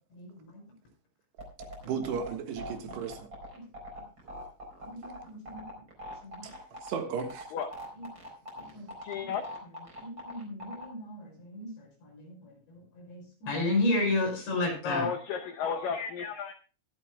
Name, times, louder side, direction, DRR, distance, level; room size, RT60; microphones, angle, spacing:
voice 1, 0.1-0.6 1.8-2.0 3.5-3.6 4.8-5.8 6.2-6.5 7.9-8.1 8.6-8.9 9.2-9.3 10.0-15.1, left 2 dB, 70° left, 8.2 m, -33 dB
sound 1, 1.4-10.8, equal, 25° right, 4.4 m, -42 dB
voice 2, 1.8-3.3 6.4-7.5, right 6 dB, 75° right, 3.5 m, -35 dB
voice 3, 9.0-9.5 14.8-16.5, left 6 dB, 90° left, 1.9 m, -33 dB
24.5 x 8.3 x 2.3 m
omnidirectional pair, 5.2 m